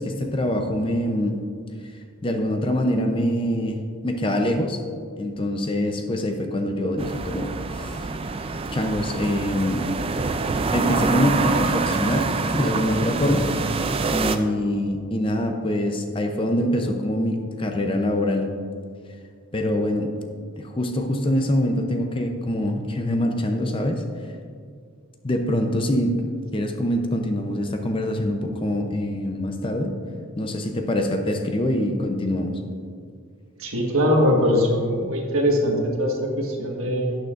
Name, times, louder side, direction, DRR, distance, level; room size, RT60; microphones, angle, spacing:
voice 1, 0.0-1.4 2.2-4.8 5.2-8.1 8.7-9.9 10.7-13.5 14.1-18.5 19.5-20.1 20.6-24.0 25.2-29.9 30.4-32.6, left 1 dB, 25° left, 5 dB, 0.6 m, -24 dB
sound 1, 7.0-14.4, right 3 dB, 25° right, 0.3 m, -26 dB
voice 2, 33.6-37.2, equal, 75° right, 1 dB, 1.5 m, -21 dB
11.5 x 9.2 x 2.5 m, 2.2 s
head